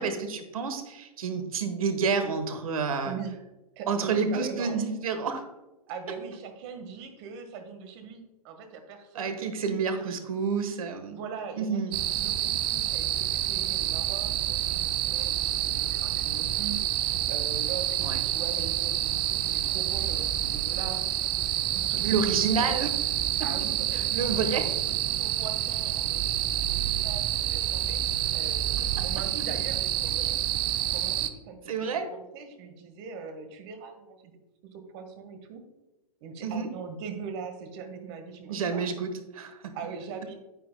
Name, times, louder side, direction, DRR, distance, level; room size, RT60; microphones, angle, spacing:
voice 1, 0.0-3.2 3.9-5.4 9.1-11.2 11.6-12.0 18.0-18.2 22.0-22.9 23.4-23.5 23.9-24.7 31.7-32.1 36.4-36.7 38.5-39.7, right 5 dB, 65° right, 8 dB, 1.3 m, -29 dB
voice 2, 3.7-4.8 5.9-10.2 11.1-21.0 21.7-22.7 23.4-26.2 26.5-28.0 28.3-30.3 30.9-34.4 34.7-35.6 36.2-38.8 39.7-40.4, right 5 dB, 40° right, 7 dB, 1.5 m, -41 dB
sound 1, 11.9-31.3, right 12 dB, 25° right, 0.5 m, -28 dB
9.5 x 9.3 x 2.2 m, 1.0 s
hypercardioid pair, 115°, 20 cm